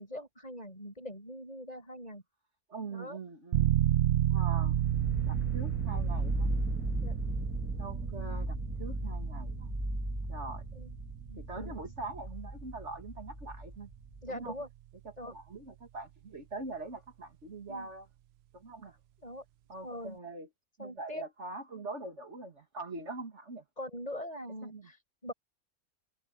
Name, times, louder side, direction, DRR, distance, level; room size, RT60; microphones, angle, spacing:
voice 1, 0.0-2.2 2.9-3.2 7.0-7.2 10.7-10.9 11.3-11.7 14.2-14.7 15.2-15.3 17.7-17.9 19.2-19.4 19.8-20.2 20.8-21.2 23.8-25.3, left 1 dB, 25° left, 7.9 m, -42 dB
voice 2, 2.7-3.7 4.3-4.8 5.2-6.5 7.8-9.7 10.3-10.6 11.4-13.9 14.3-14.6 15.0-18.1 18.5-19.0 19.7-20.5 20.8-23.6 24.6-24.9, right 3 dB, 45° right, 2.6 m, -43 dB
sound 1, 3.5-14.1, right 12 dB, 65° right, 0.6 m, -32 dB
sound 2, 4.4-14.3, equal, 10° right, 2.1 m, -37 dB
omnidirectional pair, 1.6 m